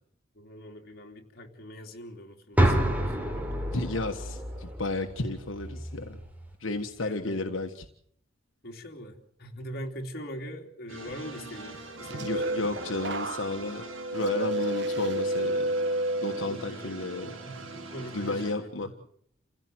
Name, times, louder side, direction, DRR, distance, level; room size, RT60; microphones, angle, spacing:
voice 1, 0.3-3.5 7.0-7.5 8.6-12.5 14.6-14.7 16.4-17.2 17.4-18.9, equal, 50° left, 3 dB, 3.2 m, -42 dB
sound 1, 2.6-6.5, right 1 dB, 10° right, 3.7 m, -29 dB
voice 2, 3.7-6.2 6.6-7.8 12.2-13.8 14.1-15.7 16.2-17.4 18.1-19.1, left 2 dB, 75° left, 5 dB, 1.5 m, -32 dB
sound 2, 10.9-18.5, right 3 dB, 85° right, 6.3 m, -43 dB
sound 3, 11.7-16.8 17.2-17.6, right 1 dB, 60° right, 1.3 m, -31 dB
28.5 x 16.0 x 7.8 m, 0.68 s
head